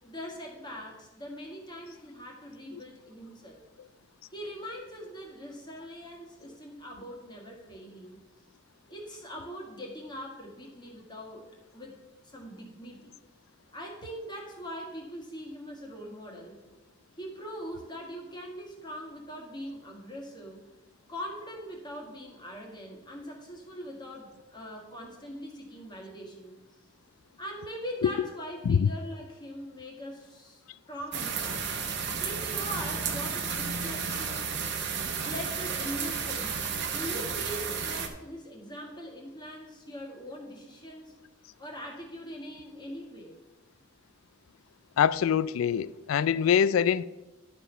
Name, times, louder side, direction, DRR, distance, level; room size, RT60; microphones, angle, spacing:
voice 1, 0.0-3.6 4.3-8.2 8.9-13.1 13.7-16.6 17.2-20.7 21.1-26.6 27.4-30.6 30.9-31.7 32.2-34.5 35.2-41.2 41.6-43.4, equal, 20° left, 1.6 m, -42 dB
sound 1, 31.1-38.1, right 6 dB, 60° right, 1.0 m, -32 dB
voice 2, 45.0-47.0, left 8 dB, 85° left, 0.3 m, -24 dB
11.5 x 4.4 x 5.5 m
head